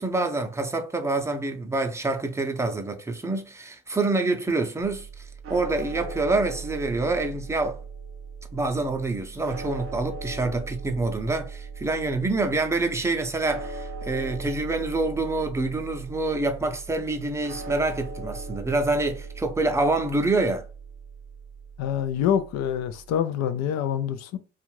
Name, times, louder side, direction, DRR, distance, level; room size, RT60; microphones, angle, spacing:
voice 1, 0.0-7.8 8.5-20.6, right 2 dB, 10° right, 0.6 m, -26 dB
sound 1, 4.8-23.2, right 4 dB, 45° right, 0.8 m, -39 dB
voice 2, 21.8-24.4, left 9 dB, 60° left, 0.5 m, -26 dB
2.5 x 2.4 x 3.1 m
hypercardioid pair, 65°, 30 cm